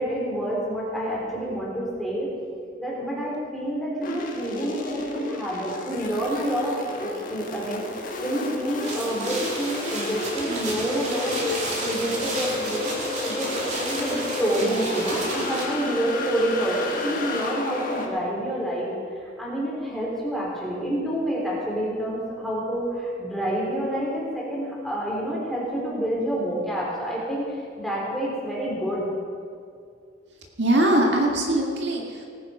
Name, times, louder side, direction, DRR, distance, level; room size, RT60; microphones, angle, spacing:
voice 1, 0.0-2.3 2.8-11.4 11.8-12.9 13.2-18.9 19.4-29.0, right 1 dB, ahead, -5 dB, 3.5 m, -28 dB
sound 1, 4.0-18.1, left 2 dB, 45° left, 1.7 m, -32 dB
sound 2, 8.8-15.7, right 2 dB, 40° right, 2.7 m, -32 dB
voice 2, 30.6-32.3, right 1 dB, 70° right, 0 dB, 1.9 m, -21 dB
18.5 x 10.0 x 5.0 m, 2.3 s
head